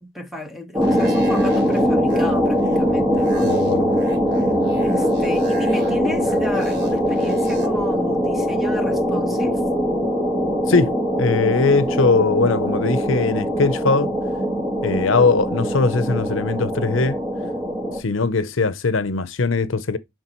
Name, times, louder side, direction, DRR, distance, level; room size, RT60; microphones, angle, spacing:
voice 1, 0.0-3.5 4.8-9.6, equal, ahead, 1.3 m, -32 dB
sound 1, 0.7-18.0, equal, 20° right, 1.7 m, -21 dB
sound 2, 0.8-7.7, right 2 dB, 55° right, 1.4 m, -40 dB
voice 2, 3.4-3.9 10.7-14.1 14.8-17.2 18.0-20.0, left 4 dB, 70° left, 0.7 m, -20 dB
11.0 x 3.8 x 3.0 m
head